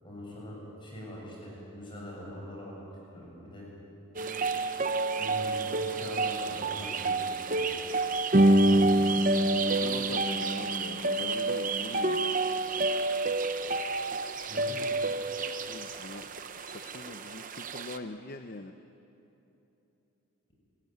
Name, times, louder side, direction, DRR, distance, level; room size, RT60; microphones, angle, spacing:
voice 1, 0.0-2.7 3.1-3.6 5.2-7.7 9.7-10.0 14.5-14.8, equal, 20° left, -4 dB, 7.1 m, -43 dB
sound 1, 4.2-18.0, right 2 dB, 35° right, 0.8 m, -28 dB
voice 2, 9.3-12.3 15.4-18.8, left 2 dB, 40° left, 8 dB, 0.7 m, -42 dB
27.0 x 15.0 x 9.5 m, 3.0 s
head